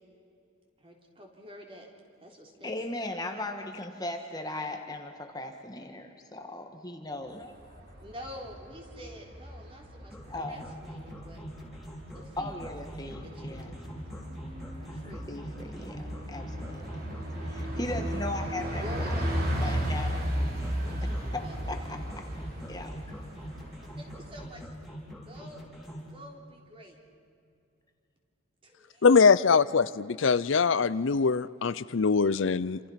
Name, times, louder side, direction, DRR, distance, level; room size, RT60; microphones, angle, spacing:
voice 1, 0.8-1.9 2.2-2.8 8.0-11.4 12.1-12.8 13.2-13.7 14.9-15.3 15.7-15.9 18.8-19.8 20.8-21.6 23.8-24.7 25.2-25.6 26.0-27.0 28.6-29.1 29.5-29.6, equal, 25° right, 1 dB, 3.8 m, -47 dB
voice 2, 2.6-7.8 10.3-10.7 12.4-13.8 14.9-17.0 17.4-18.8 19.2-19.3 19.6-20.1 21.0-22.2 22.7-22.9, left 1 dB, 20° left, 4 dB, 1.6 m, -38 dB
Bus, 7.4-24.5, equal, 45° right, 4.4 m, -35 dB
sound 1, 10.1-26.1, equal, ahead, 4.2 m, -44 dB
voice 3, 29.0-32.8, left 5 dB, 65° left, 16 dB, 0.5 m, -23 dB
28.0 x 27.5 x 5.8 m, 2.5 s
head